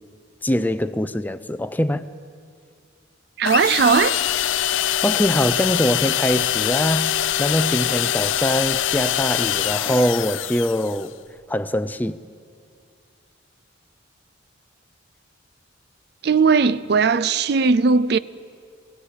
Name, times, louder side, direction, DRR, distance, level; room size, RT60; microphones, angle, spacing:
voice 1, 0.4-2.1 5.0-11.1 11.5-12.2, equal, 10° left, 0.4 m, -23 dB
voice 2, 3.4-4.2 16.2-18.2, right 5 dB, 55° right, 0.4 m, -18 dB
sound 1, 3.5-11.1, left 11 dB, 75° left, 0.5 m, -23 dB
22.0 x 16.5 x 8.4 m
head